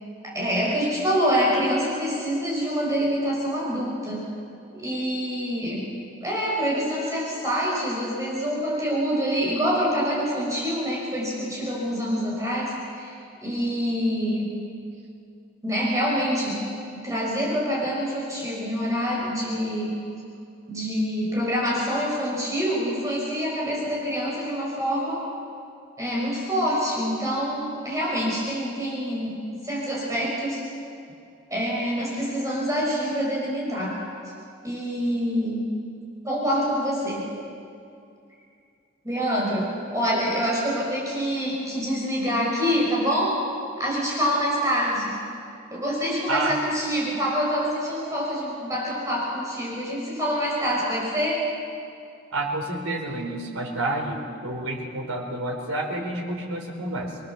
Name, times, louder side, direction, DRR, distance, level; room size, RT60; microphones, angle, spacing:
voice 1, 0.2-4.3 4.7-5.9 6.2-14.6 15.6-20.0 20.7-25.2 26.0-30.6 31.5-34.0 34.6-35.7 36.2-37.3 39.0-43.4 43.8-45.2 45.7-51.4, equal, 15° right, -4 dB, 5.6 m, -26 dB
voice 2, 52.3-57.2, right 2 dB, 85° right, -2 dB, 4.2 m, -29 dB
27.0 x 20.5 x 7.1 m, 2.5 s
head